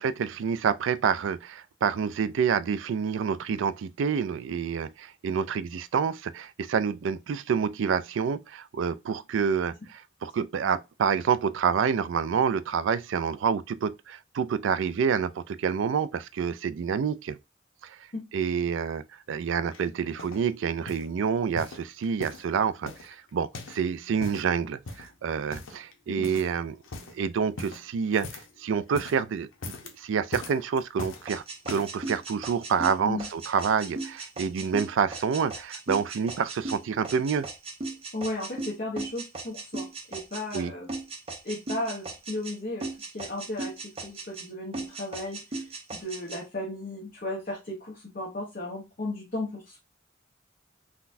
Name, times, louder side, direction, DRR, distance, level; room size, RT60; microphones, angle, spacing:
voice 1, 0.0-17.4 17.8-18.0 18.3-19.0 19.3-26.8 27.1-37.5 40.5-40.7, right 6 dB, 70° right, 0.3 m, -28 dB
sound 1, 19.7-20.5 20.9-21.1 21.5-22.5 22.9-23.8 24.1-24.5 24.9-25.2 25.5-25.9 26.2-26.6 26.8-27.2 27.6-28.6 28.8-29.2 29.5-30.0 30.3-31.3 31.6-32.0 32.7-32.8, left 3 dB, 85° left, 0.8 m, -40 dB
sound 2, 31.3-40.6 40.9-42.5 42.8-44.5 44.7-46.4, right 2 dB, 30° right, 0.7 m, -37 dB
voice 2, 38.1-40.9 41.4-45.4 45.9-49.8, left 1 dB, 45° left, 0.8 m, -35 dB
3.9 x 2.2 x 2.5 m
head